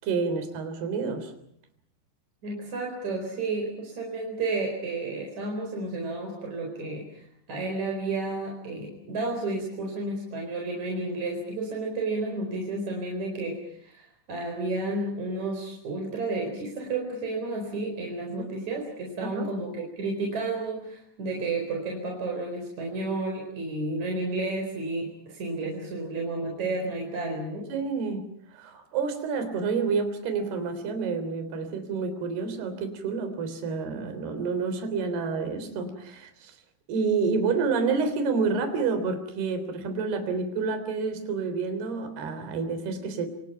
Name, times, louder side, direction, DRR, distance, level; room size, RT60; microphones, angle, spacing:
voice 1, 0.0-1.3 19.2-19.5 27.7-28.2 28.5-36.5 36.9-43.3, right 4 dB, 60° right, 8 dB, 5.4 m, -29 dB
voice 2, 2.4-27.7, right 2 dB, 40° right, 1 dB, 5.5 m, -31 dB
27.5 x 27.5 x 5.8 m, 0.70 s
omnidirectional pair, 5.1 m